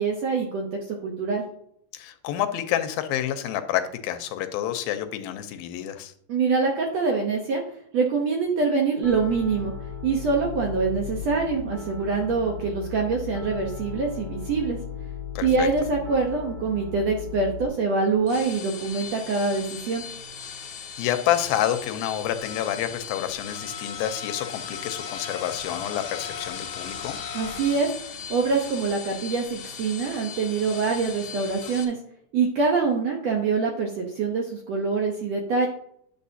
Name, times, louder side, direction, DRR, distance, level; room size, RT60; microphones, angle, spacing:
voice 1, 0.0-1.4 6.3-7.6 7.9-9.7 10.0-14.8 15.4-20.0 27.3-27.9 28.3-32.0 32.3-35.7, right 4 dB, 70° right, 1 dB, 1.6 m, -25 dB
voice 2, 1.9-6.1 15.4-15.7 21.0-27.2, left 11 dB, 90° left, 9 dB, 2.5 m, -28 dB
Piano, 9.0-17.7, left 7 dB, 25° right, 1.9 m, -36 dB
sound 1, 18.1-31.8, left 6 dB, 60° left, 2.5 m, -37 dB
10.0 x 6.8 x 2.7 m, 0.68 s
omnidirectional pair, 4.2 m